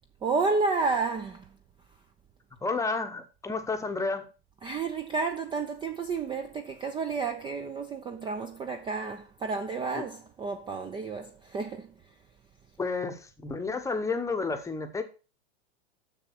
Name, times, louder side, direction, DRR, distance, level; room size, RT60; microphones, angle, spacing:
voice 1, 0.2-1.5 4.6-11.9, right 4 dB, 15° right, 0.6 m, -31 dB
voice 2, 2.6-4.3 9.9-10.1 12.8-15.0, left 4 dB, 10° left, 1.0 m, -31 dB
6.9 x 6.9 x 5.8 m
hypercardioid pair, 130°, 33 cm